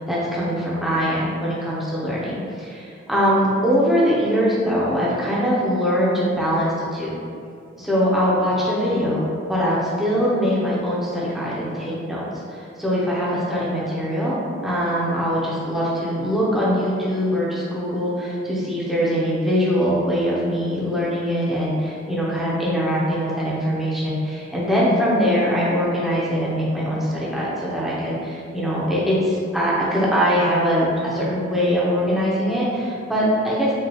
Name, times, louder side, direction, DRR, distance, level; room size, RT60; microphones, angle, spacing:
voice 1, 0.0-7.1 7.8-12.2 12.5-33.7, equal, ahead, -8 dB, 0.6 m, -22 dB
5.3 x 2.3 x 2.9 m, 2.4 s
head